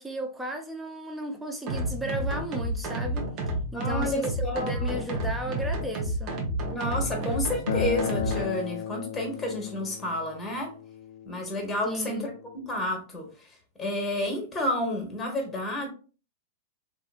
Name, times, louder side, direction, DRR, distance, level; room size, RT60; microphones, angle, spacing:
voice 1, 0.0-3.3 3.7-6.4 11.8-12.3, right 1 dB, 10° right, 0.6 m, -34 dB
sound 1, 1.7-8.5, right 1 dB, 45° right, 0.8 m, -30 dB
voice 2, 3.7-5.1 6.7-10.7 11.3-12.3 12.7-15.9, left 1 dB, 15° left, 1.0 m, -30 dB
Acoustic guitar, 7.7-12.9, left 9 dB, 85° left, 0.4 m, -35 dB
2.9 x 2.5 x 2.3 m
hypercardioid pair, 125°, 0 cm